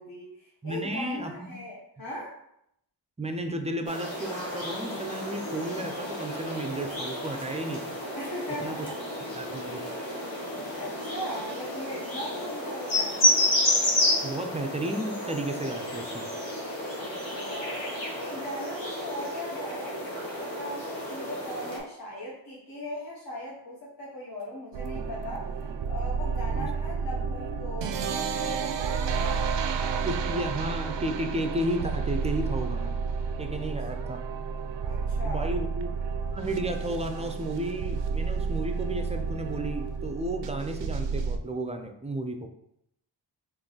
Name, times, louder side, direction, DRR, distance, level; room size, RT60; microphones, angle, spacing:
voice 1, 0.0-2.4 8.1-9.0 10.4-13.3 16.9-17.8 18.2-25.5 25.9-30.4 33.6-33.7 34.9-35.6, left 1 dB, 50° left, -6 dB, 1.1 m, -39 dB
voice 2, 0.6-1.5 3.2-8.0 8.6-8.9 9.4-9.8 14.2-16.3 26.5-26.7 29.1-29.3 30.0-33.0 33.4-34.2 35.2-36.0 36.3-42.5, right 1 dB, 15° right, 5 dB, 0.4 m, -33 dB
sound 1, 3.8-21.8, left 1 dB, 75° left, 1.3 m, -31 dB
sound 2, 24.7-41.4, right 5 dB, 70° right, 0.5 m, -31 dB
3.8 x 2.6 x 3.8 m, 0.75 s
wide cardioid pair, 70°, 45 cm